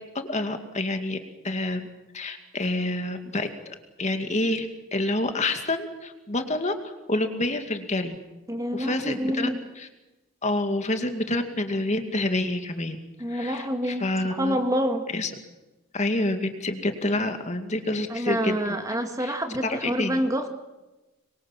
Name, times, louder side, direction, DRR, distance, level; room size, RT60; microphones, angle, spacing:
voice 1, 0.1-1.2 1.4-1.9 2.1-4.7 4.9-8.2 8.7-9.5 9.8-9.9 10.4-13.0 13.3-14.6 15.1-15.3 15.9-18.8 19.2-19.4 19.6-20.2, left 2 dB, 35° left, 6 dB, 2.3 m, -28 dB
voice 2, 8.5-9.6 13.2-15.0 18.1-20.5, equal, 15° right, 6 dB, 2.0 m, -27 dB
26.0 x 23.0 x 7.4 m, 1.1 s
head